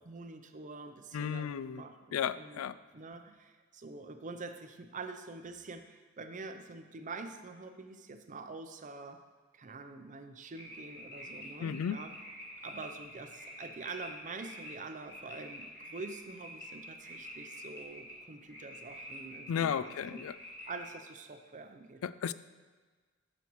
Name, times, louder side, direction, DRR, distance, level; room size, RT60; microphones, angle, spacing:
voice 1, 0.0-2.7 2.9-9.2 9.5-12.1 12.6-20.2 20.7-22.0, right 3 dB, 40° right, 7 dB, 0.6 m, -46 dB
voice 2, 1.1-1.8 2.1-2.8 11.6-12.0 19.5-20.4 22.0-22.3, left 8 dB, 80° left, 15 dB, 0.3 m, -34 dB
sound 1, 10.5-20.9, equal, 15° left, 1.9 m, -48 dB
12.5 x 6.2 x 3.1 m, 1.4 s
head